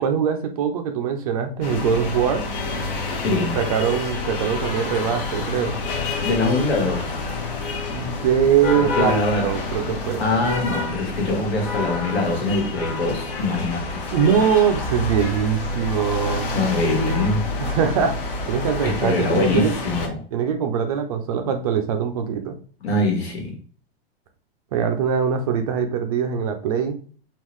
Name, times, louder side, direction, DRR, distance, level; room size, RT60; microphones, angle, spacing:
voice 1, 0.0-2.4 3.4-5.8 7.9-10.2 14.1-16.5 17.6-19.7 20.3-22.5 24.7-27.0, right 7 dB, 40° right, 6 dB, 0.4 m, -22 dB
sound 1, 1.6-20.1, left 3 dB, 60° left, 0.9 m, -28 dB
voice 2, 3.2-3.6 6.2-7.1 8.7-9.5 10.2-14.0 16.5-17.4 18.8-20.2 22.8-23.5, left 2 dB, 80° left, 2 dB, 1.4 m, -23 dB
3.7 x 2.3 x 3.0 m, 0.42 s
supercardioid pair, 165°, 31 cm